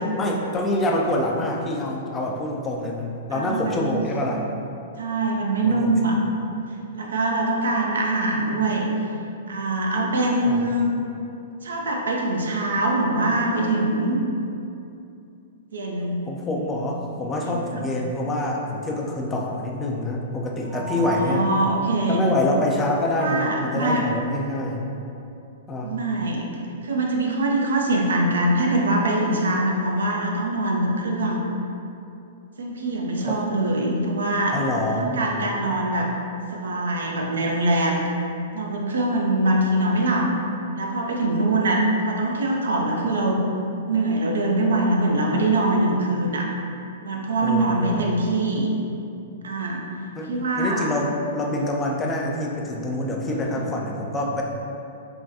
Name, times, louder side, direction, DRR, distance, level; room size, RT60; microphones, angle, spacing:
voice 1, 0.2-4.4 5.6-5.9 10.4-10.7 16.3-21.5 22.1-24.9 25.7-25.9 33.2-33.4 34.5-35.6 47.4-48.1 50.2-50.3 50.6-54.4, left 1 dB, 20° left, -1 dB, 0.4 m, -26 dB
voice 2, 3.3-4.0 5.0-6.2 6.9-8.9 9.5-10.9 11.6-14.2 15.7-16.2 17.4-17.8 20.7-22.2 23.1-24.0 25.8-31.4 32.6-34.6 34.9-36.1 36.5-38.0 38.5-40.3 40.7-43.4 43.9-46.5 47.0-48.7 49.4-49.8 50.3-50.9 53.4-53.7, right 2 dB, 75° right, -1 dB, 0.4 m, -23 dB
3.4 x 2.2 x 2.6 m, 2.7 s
hypercardioid pair, 110°, 0 cm